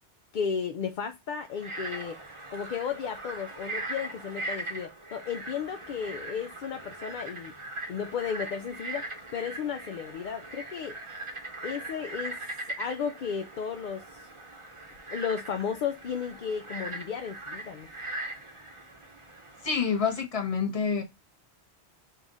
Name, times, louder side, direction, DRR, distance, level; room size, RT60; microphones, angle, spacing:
voice 1, 0.3-2.2 2.5-7.5 7.9-11.0 11.6-12.4 12.8-14.3 15.1-17.9, left 7 dB, 60° left, 0.6 m, -34 dB
Frog, 1.5-20.2, right 2 dB, 30° right, 0.9 m, -40 dB
voice 2, 19.6-21.0, left 6 dB, 35° left, 1.0 m, -27 dB
5.4 x 2.4 x 3.9 m
omnidirectional pair, 1.1 m